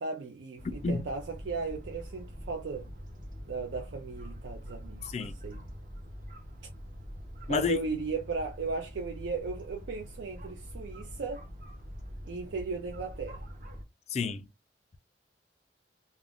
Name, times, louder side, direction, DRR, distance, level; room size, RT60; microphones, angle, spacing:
voice 1, 0.0-2.9 3.5-5.6 7.5-11.4 12.3-13.5, right 4 dB, 90° right, 0.5 m, -36 dB
sound 1, 0.6-13.9, equal, 45° right, 0.7 m, -44 dB
voice 2, 5.0-5.4 7.5-7.9 14.1-14.5, left 4 dB, 35° left, 0.3 m, -30 dB
2.4 x 2.0 x 3.5 m
head